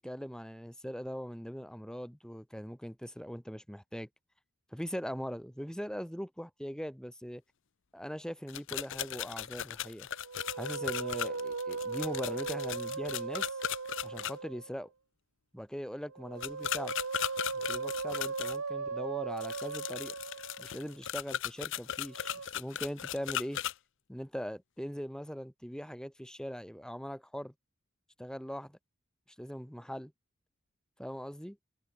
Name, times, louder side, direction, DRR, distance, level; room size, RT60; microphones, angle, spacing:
voice 1, 0.0-4.1 4.7-7.4 7.9-10.1 10.5-13.6 14.0-14.9 15.5-16.9 17.5-20.1 20.6-23.6 24.1-27.5 28.2-28.8 29.4-30.1 31.0-31.6, equal, 5° left, 6.5 m, -41 dB
sound 1, 8.5-14.3 16.4-18.6 19.4-23.7, left 10 dB, 60° left, 0.7 m, -37 dB
Musical instrument, 10.1-14.8 16.1-20.9 22.0-22.5, right 4 dB, 85° right, 1.2 m, -38 dB
head